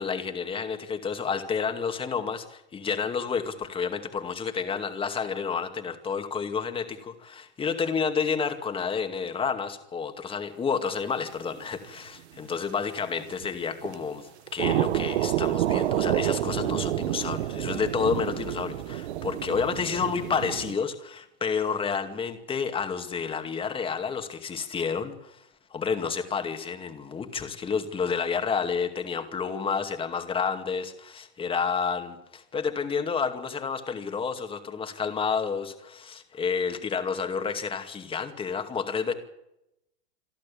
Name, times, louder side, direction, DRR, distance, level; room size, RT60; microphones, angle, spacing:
voice 1, 0.0-25.4 25.7-39.1, left 6 dB, 15° left, 7 dB, 2.3 m, -30 dB
sound 1, 11.5-11.6 11.8-11.9 12.5-12.6 13.2-13.5 13.8-14.0 14.5-20.8, right 13 dB, 75° right, 1.1 m, -28 dB
27.5 x 11.5 x 8.6 m, 0.84 s
supercardioid pair, 140°, 33 cm